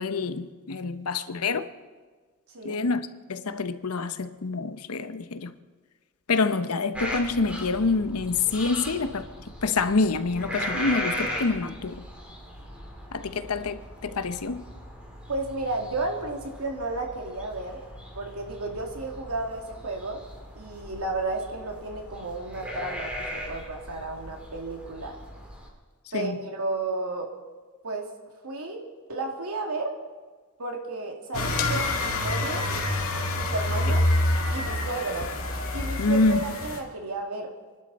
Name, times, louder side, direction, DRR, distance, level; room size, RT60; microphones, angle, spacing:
voice 1, 0.0-1.7 2.6-5.5 6.3-9.2 9.6-12.0 13.1-14.6 26.1-26.4 36.0-36.4, left 3 dB, 85° left, 0.9 m, -27 dB
sound 1, 6.9-25.7, equal, 5° right, 2.9 m, -38 dB
voice 2, 15.3-17.8 18.1-20.2 20.5-25.2 26.1-27.3 27.8-28.1 28.4-29.9 30.6-32.7 33.3-34.1 34.5-35.3 35.7-37.5, right 2 dB, 85° right, 2.6 m, -32 dB
sound 2, 31.3-36.8, left 2 dB, 70° left, 2.2 m, -27 dB
27.5 x 12.0 x 4.2 m
head